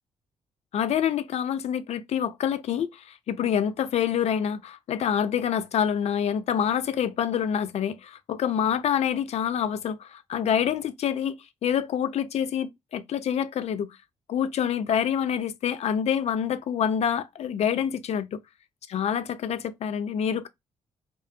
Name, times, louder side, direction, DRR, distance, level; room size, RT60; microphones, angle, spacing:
voice 1, 0.7-14.0 14.3-18.4 18.9-20.5, left 8 dB, 45° left, 0.4 m, -27 dB
2.7 x 2.0 x 2.3 m
hypercardioid pair, 40°, 15 cm